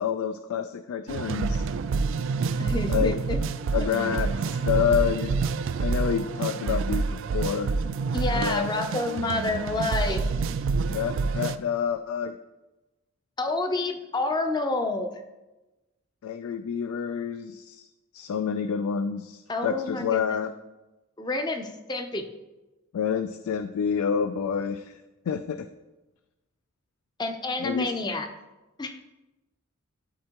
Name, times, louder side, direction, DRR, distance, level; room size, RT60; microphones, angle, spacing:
voice 1, 0.0-1.7 2.9-3.2 3.7-5.3 5.8-7.7 8.3-8.7 10.9-12.3 16.2-17.9 18.1-20.5 22.9-25.0 25.3-25.7 27.6-27.9, left 7 dB, 90° left, 10 dB, 0.3 m, -28 dB
sound 1, 1.1-11.6, right 4 dB, 65° right, 0.3 m, -27 dB
voice 2, 2.6-3.4 8.1-10.2 13.4-15.1 19.5-20.4 21.2-22.3 27.2-28.3 28.8-29.0, left 2 dB, 20° left, 6 dB, 0.5 m, -29 dB
12.0 x 4.4 x 2.9 m, 1.1 s
head